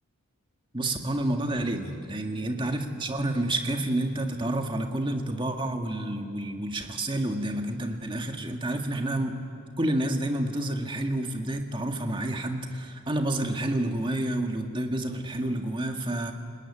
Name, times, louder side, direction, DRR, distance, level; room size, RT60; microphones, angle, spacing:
voice 1, 0.7-9.4 9.8-16.3, right 1 dB, 20° right, 4 dB, 1.8 m, -29 dB
29.0 x 19.5 x 9.8 m, 2.4 s
head